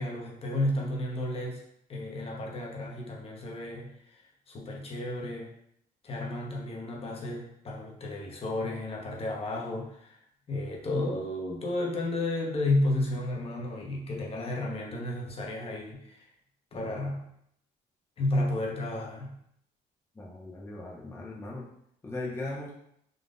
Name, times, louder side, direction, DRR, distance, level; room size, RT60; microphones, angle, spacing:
voice 1, 0.0-1.6 1.9-5.5 6.0-10.2 10.5-16.2 16.7-17.3 18.2-19.3, left 1 dB, 35° left, -1 dB, 1.0 m, -32 dB
voice 2, 20.1-21.7 22.0-22.7, left 2 dB, 15° left, -4 dB, 0.7 m, -38 dB
3.8 x 2.4 x 3.7 m, 0.73 s
cardioid pair, 110°, 17 cm